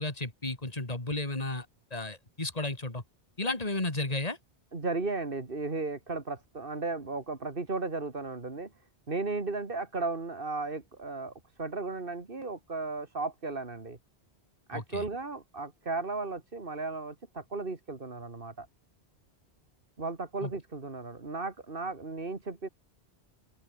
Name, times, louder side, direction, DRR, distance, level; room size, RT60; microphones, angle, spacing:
voice 1, 0.0-3.0 3.4-4.4 14.7-15.0 20.4-20.5, left 2 dB, 35° left, 3.4 m, -33 dB
voice 2, 4.7-8.7 9.1-14.0 14.7-18.7 20.0-22.7, right 3 dB, 55° right, 2.6 m, -35 dB
open air
omnidirectional pair, 1.1 m